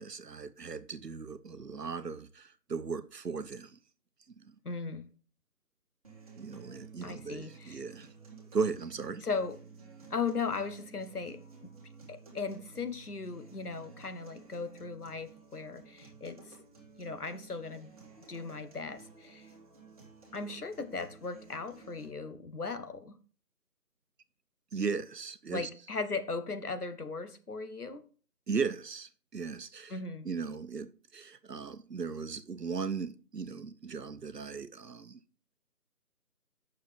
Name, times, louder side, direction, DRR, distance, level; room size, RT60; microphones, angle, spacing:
voice 1, 0.0-3.8 4.4-4.5 6.4-8.1 8.5-9.2 24.7-25.7 28.5-29.9 30.2-35.2, right 5 dB, 85° right, 0.9 m, -37 dB
voice 2, 4.6-5.1 7.0-7.8 9.2-9.6 10.1-16.6 17.0-17.9 18.3-19.5 20.3-23.2 25.5-28.0 29.9-30.3, left 4 dB, 70° left, 1.3 m, -38 dB
sound 1, 6.0-22.1, right 5 dB, 25° right, 1.6 m, -53 dB
8.1 x 6.5 x 3.5 m
figure-of-eight pair, 160°, 47 cm